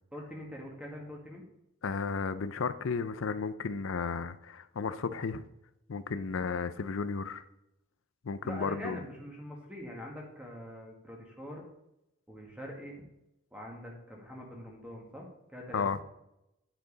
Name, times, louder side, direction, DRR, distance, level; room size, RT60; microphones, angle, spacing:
voice 1, 0.1-1.5 8.4-11.6 12.3-13.0 13.5-15.8, left 1 dB, 5° right, -1 dB, 1.7 m, -44 dB
voice 2, 1.8-5.4 5.9-7.4 8.2-9.0 15.7-16.0, left 5 dB, 75° left, 13 dB, 0.5 m, -33 dB
10.5 x 6.6 x 4.0 m, 0.87 s
head